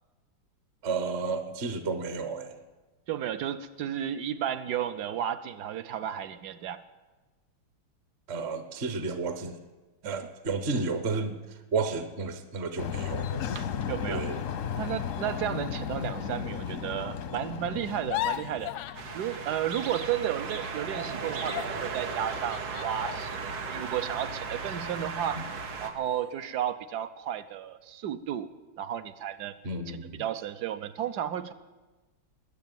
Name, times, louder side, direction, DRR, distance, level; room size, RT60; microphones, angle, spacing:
voice 1, 0.8-2.6 8.3-9.6 10.0-13.4 14.1-14.4 25.4-25.5 29.6-30.2, right 4 dB, 45° right, 9 dB, 1.0 m, -32 dB
voice 2, 3.1-6.8 13.5-14.2 14.8-23.4 23.7-25.4 25.8-28.5 28.8-29.5 29.9-31.5, right 10 dB, 65° right, 12 dB, 1.0 m, -33 dB
sound 1, 12.8-19.2, left 8 dB, 65° left, 0.8 m, -35 dB
sound 2, 17.9-20.4 20.6-25.0 25.5-25.7 26.1-26.6, left 14 dB, 85° left, 1.5 m, -39 dB
sound 3, 18.9-25.9, right 4 dB, 85° right, 2.2 m, -36 dB
20.5 x 7.3 x 9.2 m, 1.2 s
omnidirectional pair, 2.3 m